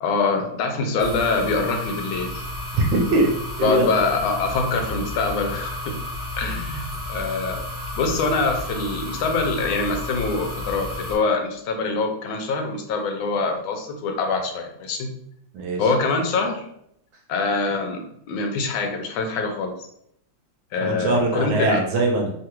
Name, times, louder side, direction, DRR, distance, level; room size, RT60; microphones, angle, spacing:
voice 1, 0.0-2.5 3.6-5.9 6.4-7.6 7.9-15.1 15.8-16.7 17.3-19.7 20.7-21.8, left 3 dB, 80° left, 4 dB, 1.4 m, -24 dB
sound 1, 1.0-11.2, left 1 dB, 40° right, 0.7 m, -32 dB
voice 2, 2.7-3.3 3.6-3.9 15.5-15.9 20.8-22.3, right 2 dB, 75° right, 1 dB, 1.3 m, -21 dB
3.5 x 2.3 x 2.9 m, 0.71 s
omnidirectional pair, 2.2 m